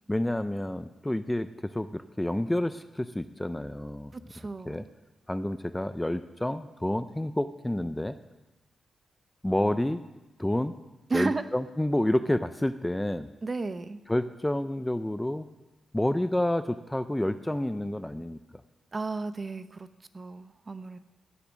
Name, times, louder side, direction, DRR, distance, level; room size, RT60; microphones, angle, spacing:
voice 1, 0.1-4.1 4.7-4.8 5.3-8.2 9.4-10.0 10.4-10.8 11.1-13.3 14.1-15.5 15.9-18.6, left 1 dB, 10° left, 12 dB, 0.5 m, -29 dB
voice 2, 4.1-4.9 11.1-11.4 13.4-14.0 18.9-19.9 20.1-21.0, right 3 dB, 30° right, 12 dB, 0.7 m, -33 dB
17.0 x 7.1 x 6.3 m, 1.1 s
cardioid pair, 90°, 0 cm